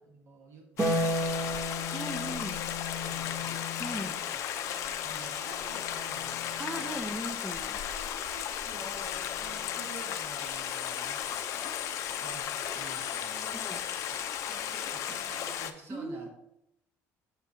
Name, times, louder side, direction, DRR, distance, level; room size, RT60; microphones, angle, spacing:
voice 1, 0.0-1.6 2.5-2.6 2.9-3.6 4.0-4.4 5.0-6.9 7.9-13.6 14.1-16.3, right 3 dB, 45° right, 1 dB, 1.4 m, -50 dB
Stream, 0.8-15.7, left 10 dB, 55° left, 0.6 m, -35 dB
Harp, 0.8-7.3 8.9-9.9, left 1 dB, 25° right, 1.1 m, -36 dB
voice 2, 1.9-2.6 3.8-4.1 6.6-7.8 13.5-13.8 15.9-16.3, right 1 dB, 10° right, 8 dB, 0.6 m, -38 dB
8.8 x 6.3 x 2.8 m, 0.82 s
cardioid pair, 140°, 6 cm